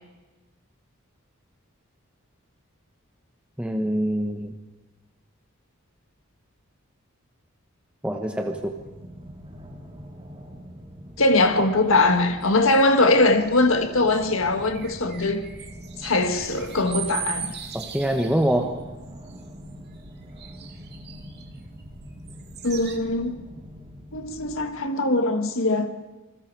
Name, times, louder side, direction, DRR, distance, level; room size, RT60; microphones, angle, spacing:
voice 1, 3.6-4.5 8.0-8.7 17.7-18.8, right 1 dB, 5° right, 1.3 m, -25 dB
sound 1, 8.5-24.7, equal, 25° right, 3.1 m, -43 dB
voice 2, 11.2-15.4 16.0-17.5 22.6-23.5 24.1-25.9, left 2 dB, 65° left, 1.8 m, -21 dB
sound 2, 12.4-18.6 19.0-19.7 20.4-21.8 22.3-23.0, right 8 dB, 50° right, 2.1 m, -39 dB
28.0 x 21.0 x 4.8 m
head